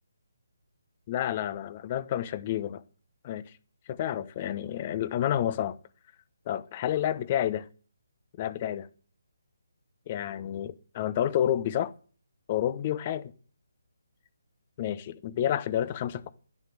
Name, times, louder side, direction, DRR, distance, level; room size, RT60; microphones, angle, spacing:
voice 1, 1.1-2.8 3.2-3.4 3.9-5.7 6.5-7.7 8.4-8.9 10.1-11.9 12.5-13.2 14.8-16.3, left 11 dB, 30° left, 1.0 m, -29 dB
11.5 x 11.0 x 7.7 m
figure-of-eight pair, 145°, 0 cm